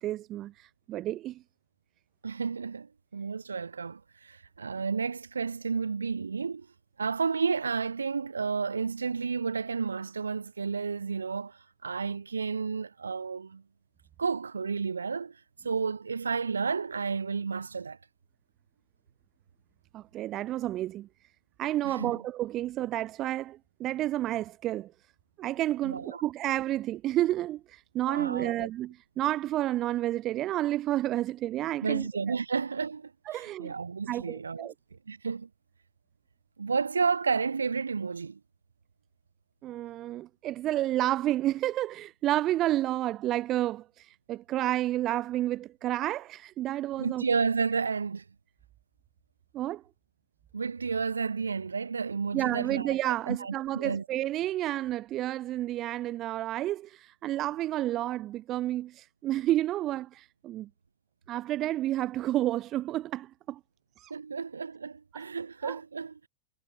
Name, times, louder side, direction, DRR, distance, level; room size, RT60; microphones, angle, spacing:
voice 1, 0.0-1.4 19.9-21.1 21.6-24.9 25.4-32.1 33.3-33.7 34.1-34.7 39.6-47.2 49.5-49.8 52.3-60.7 61.3-63.6 64.0-64.1 65.1-65.3 65.6-65.8, right 14 dB, 35° right, 1.3 m, -30 dB
voice 2, 2.2-6.7 7.0-13.6 14.2-15.4 15.6-18.0 21.8-22.2 25.8-26.2 28.1-28.7 31.8-35.5 36.6-38.4 47.0-48.2 50.5-53.0 53.3-54.0 64.1-66.3, right 5 dB, 75° right, 5.6 m, -31 dB
figure-of-eight pair, 90°, 0 cm